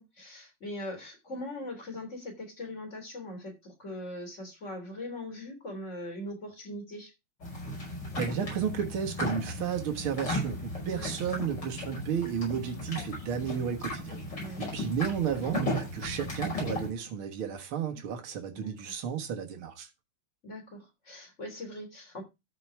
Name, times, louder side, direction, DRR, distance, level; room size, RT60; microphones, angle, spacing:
voice 1, 0.0-7.1 10.8-11.1 14.4-14.6 18.5-18.7 20.4-22.2, left 1 dB, 35° left, 3.6 m, -41 dB
sound 1, 7.4-16.9, left 1 dB, 55° left, 6.2 m, -36 dB
voice 2, 8.2-14.2 14.6-19.9, right 8 dB, 75° right, 2.3 m, -33 dB
13.5 x 4.8 x 4.5 m
omnidirectional pair, 2.3 m